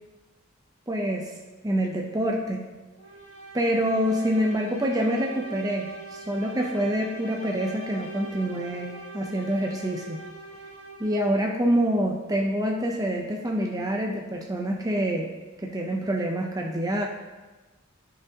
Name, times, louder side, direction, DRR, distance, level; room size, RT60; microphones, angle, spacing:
voice 1, 0.9-1.3 1.6-2.7 3.5-10.2 11.0-15.3 15.6-17.1, equal, 20° right, 0 dB, 0.6 m, -26 dB
sound 1, 3.0-11.4, right 2 dB, 85° left, 1.8 m, -42 dB
13.0 x 5.0 x 2.8 m, 1.2 s
head